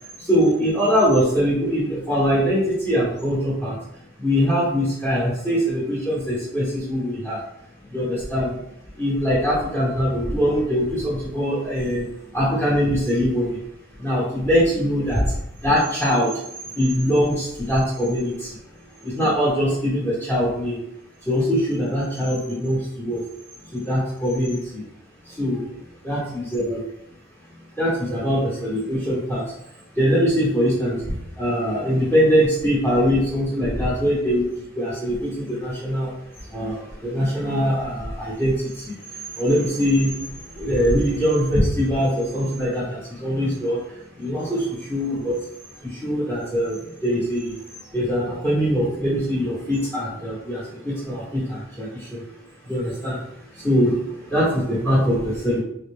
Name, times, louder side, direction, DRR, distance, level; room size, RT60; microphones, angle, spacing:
voice 1, 0.2-3.8 4.2-7.4 7.9-8.5 8.9-12.1 12.3-13.6 14.0-16.3 16.7-18.6 19.0-20.8 21.2-23.2 23.6-24.8 25.2-25.7 26.0-26.8 27.8-29.4 29.9-34.5 34.7-36.1 36.4-45.4 45.8-47.6 47.9-52.2 52.6-53.2 53.5-55.6, equal, 10° left, -8 dB, 1.1 m, -22 dB
3.9 x 2.1 x 3.5 m, 0.76 s
head